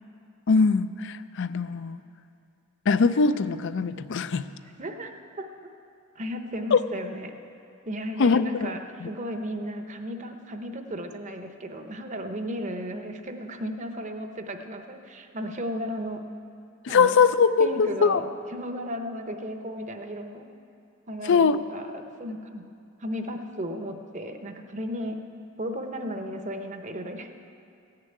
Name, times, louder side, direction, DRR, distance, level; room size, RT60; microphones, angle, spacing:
voice 1, 0.5-2.0 2.9-4.5 6.7-6.8 8.2-8.7 9.0-9.1 16.8-18.2 21.2-21.6, left 5 dB, 55° left, 13 dB, 0.4 m, -22 dB
voice 2, 4.8-5.5 6.1-7.3 7.8-16.2 16.9-17.2 17.6-20.5 21.1-22.6 23.0-25.1 25.6-27.5, equal, 35° right, 6 dB, 0.8 m, -35 dB
15.5 x 6.8 x 9.3 m, 2.6 s
head